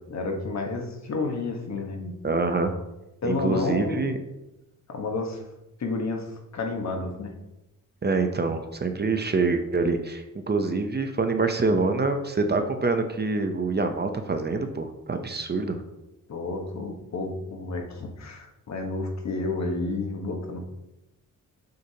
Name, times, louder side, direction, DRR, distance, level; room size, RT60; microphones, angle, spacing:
voice 1, 0.1-2.1 3.2-4.2 4.9-5.5 5.8-7.3 16.3-20.7, left 3 dB, 50° left, 3 dB, 1.2 m, -31 dB
voice 2, 2.2-2.7 3.2-4.2 8.0-15.8, right 3 dB, 30° right, 6 dB, 0.7 m, -25 dB
6.7 x 6.6 x 2.8 m, 0.91 s
cardioid pair, 100°, 34 cm